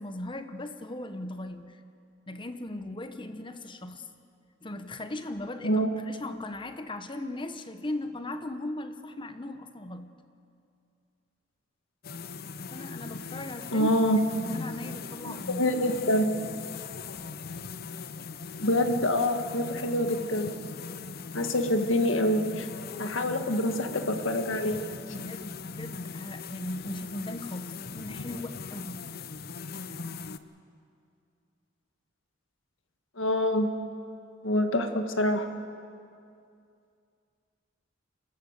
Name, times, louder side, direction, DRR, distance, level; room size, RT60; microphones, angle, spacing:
voice 1, 0.0-1.8 2.3-4.0 4.6-10.1 12.7-14.0 14.4-15.6 25.1-29.1, left 1 dB, 25° left, 9 dB, 1.1 m, -38 dB
sound 1, 12.0-30.4, left 5 dB, 50° left, 0.7 m, -40 dB
voice 2, 13.7-14.2 15.2-16.3 18.6-20.5 21.3-22.7 23.0-24.8 33.2-33.7 34.4-35.5, left 1 dB, 85° left, 6 dB, 1.6 m, -26 dB
27.0 x 13.5 x 8.1 m, 2.5 s
head